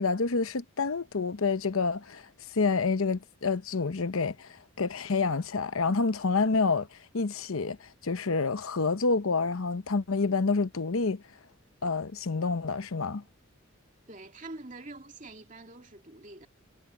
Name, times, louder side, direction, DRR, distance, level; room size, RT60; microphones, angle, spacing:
voice 1, 0.0-2.2 2.5-4.5 4.8-6.9 7.1-7.8 8.0-11.2 11.8-13.2, left 4 dB, 75° left, 0.8 m, -28 dB
voice 2, 14.1-16.5, right 2 dB, 35° right, 2.5 m, -45 dB
head